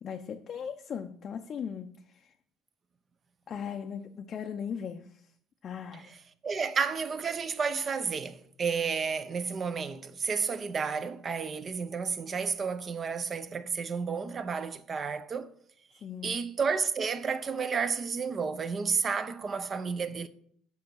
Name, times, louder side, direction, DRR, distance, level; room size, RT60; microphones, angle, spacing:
voice 1, 0.0-2.3 3.5-5.3 5.6-6.1 16.0-16.4, left 7 dB, 35° left, 0.5 m, -38 dB
voice 2, 6.4-15.5 16.2-20.3, right 5 dB, 30° right, 0.7 m, -31 dB
7.2 x 5.5 x 6.3 m
cardioid pair, 130°, 0 cm